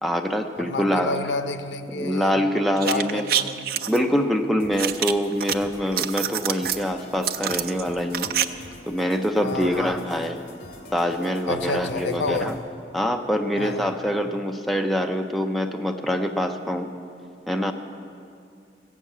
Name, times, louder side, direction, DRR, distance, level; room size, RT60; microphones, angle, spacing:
voice 1, 0.0-1.2 1.9-3.3 3.9-8.3 8.9-10.4 10.9-12.6 12.9-16.9 17.5-17.7, equal, ahead, 0.5 m, -25 dB
voice 2, 0.6-2.4 2.9-4.0 9.4-9.9 11.5-12.5 13.6-13.9, left 3 dB, 75° left, 0.7 m, -30 dB
sound 1, 2.8-4.0 4.8-5.5 5.9-6.8 7.2-8.4 8.7-8.8, right 10 dB, 55° right, 0.4 m, -26 dB
sound 2, 4.6-12.6, left 1 dB, 50° left, 2.2 m, -45 dB
15.0 x 7.4 x 8.3 m
head